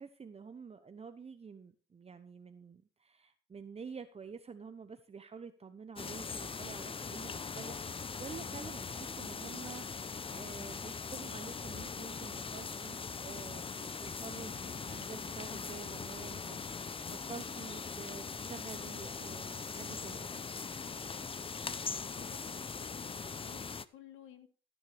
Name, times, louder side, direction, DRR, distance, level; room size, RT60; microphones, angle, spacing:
voice 1, 0.0-20.3, right 5 dB, 30° right, 0.9 m, -49 dB
sound 1, 6.0-23.8, left 5 dB, 25° left, 0.7 m, -41 dB
voice 2, 22.1-24.5, left 10 dB, 90° left, 1.7 m, -55 dB
15.0 x 9.6 x 3.5 m
cardioid pair, 90°, 20 cm